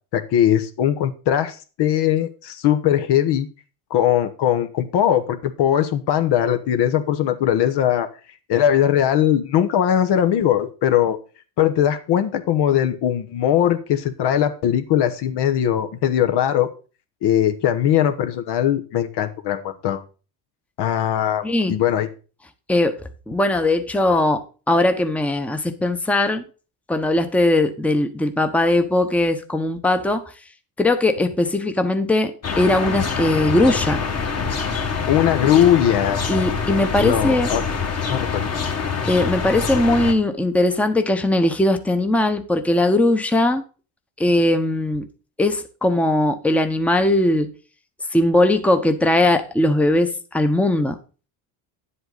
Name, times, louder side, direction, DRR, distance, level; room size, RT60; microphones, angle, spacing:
voice 1, 0.1-3.5 3.9-8.1 8.5-11.2 11.6-16.7 17.2-20.0 20.8-22.1 35.1-36.4 37.0-37.6 38.1-38.4, left 10 dB, 65° left, 1.1 m, -20 dB
voice 2, 21.4-21.7 22.7-23.0 23.3-26.4 26.9-30.3 30.8-34.0 36.3-37.5 39.0-43.6 44.2-45.1 45.4-47.5 48.1-51.0, left 1 dB, 5° left, 0.9 m, -19 dB
sound 1, 32.4-40.1, left 5 dB, 35° left, 1.6 m, -25 dB
9.6 x 7.9 x 3.9 m
cardioid pair, 100°, 44 cm